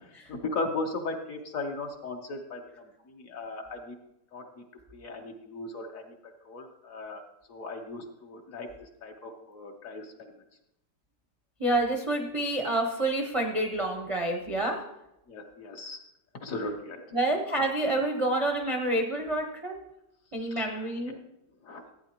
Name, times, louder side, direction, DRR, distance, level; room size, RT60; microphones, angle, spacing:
voice 1, 0.3-2.6 3.1-3.9 4.3-4.4 4.9-6.1 6.4-7.2 7.5-10.1 15.3-16.0 16.4-17.0 20.6-21.2 21.6-21.8, left 3 dB, 55° left, 4 dB, 1.3 m, -37 dB
voice 2, 11.6-14.8 17.1-19.7 20.3-21.1, right 1 dB, 30° right, 2 dB, 0.5 m, -28 dB
15.0 x 8.9 x 2.9 m, 0.86 s
omnidirectional pair, 1.9 m